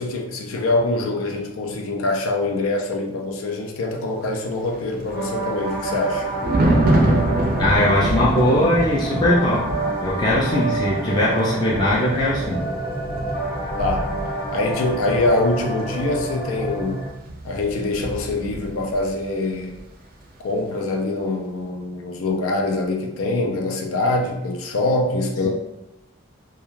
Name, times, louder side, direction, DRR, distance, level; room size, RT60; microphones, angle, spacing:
voice 1, 0.0-6.3 13.8-14.1 14.5-17.0 17.4-19.8 20.4-25.5, left 2 dB, 90° left, 2 dB, 0.4 m, -24 dB
Thunder, 4.7-19.2 19.5-19.8, right 1 dB, 45° right, 0.4 m, -26 dB
sound 1, 5.1-17.1, right 2 dB, 40° left, 0.8 m, -28 dB
voice 2, 7.6-9.6 10.0-12.6, left 1 dB, 20° left, -6 dB, 0.4 m, -20 dB
2.3 x 2.2 x 3.0 m, 0.89 s
head